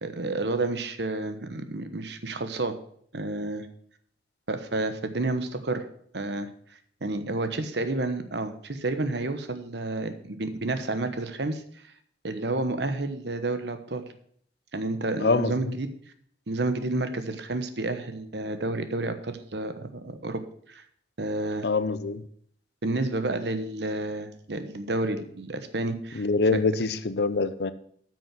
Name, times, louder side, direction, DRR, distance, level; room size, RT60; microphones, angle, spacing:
voice 1, 0.0-2.7 3.1-3.7 4.5-5.8 6.1-6.5 7.0-11.6 12.2-14.0 14.7-15.9 16.5-20.4 20.7-20.8 21.2-21.7 22.8-26.3 26.5-26.6, right 2 dB, 70° right, 1.1 m, -30 dB
voice 2, 15.2-15.8 21.6-22.2 26.1-27.7, left 3 dB, 65° left, 0.7 m, -25 dB
9.1 x 6.2 x 7.5 m
head